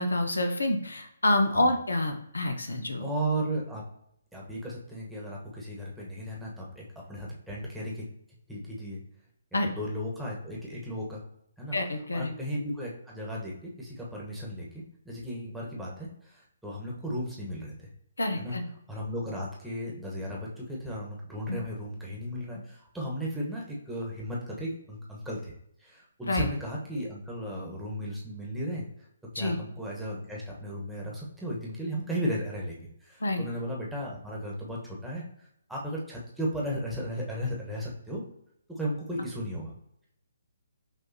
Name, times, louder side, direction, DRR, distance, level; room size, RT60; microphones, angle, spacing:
voice 1, 0.0-3.1 9.5-9.7 11.7-12.3 18.2-18.7 21.5-21.6 26.3-26.5 29.3-29.6 33.2-33.5, left 1 dB, 80° left, 6 dB, 0.7 m, -27 dB
voice 2, 3.0-3.8 4.3-8.0 8.5-9.0 9.6-11.2 11.6-11.8 12.1-17.9 18.4-18.6 18.9-25.5 25.8-28.8 29.3-35.2 35.7-38.2 38.8-39.7, equal, 5° right, -5 dB, 1.2 m, -35 dB
6.1 x 2.6 x 2.8 m, 0.73 s
figure-of-eight pair, 140°, 0 cm